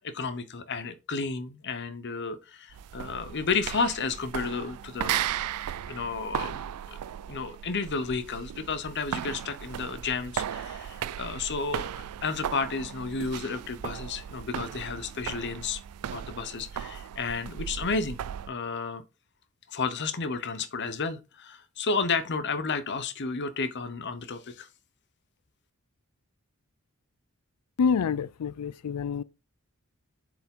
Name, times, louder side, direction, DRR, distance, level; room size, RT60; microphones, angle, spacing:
voice 1, 0.0-5.3 5.9-7.0 7.3-15.8 16.1-18.2 18.5-19.0 19.7-24.7, left 4 dB, 50° left, 0.8 m, -32 dB
sound 1, 2.7-18.5, right 10 dB, 85° right, 0.4 m, -36 dB
voice 2, 27.8-29.2, left 6 dB, 85° left, 0.4 m, -27 dB
7.5 x 4.9 x 3.7 m
head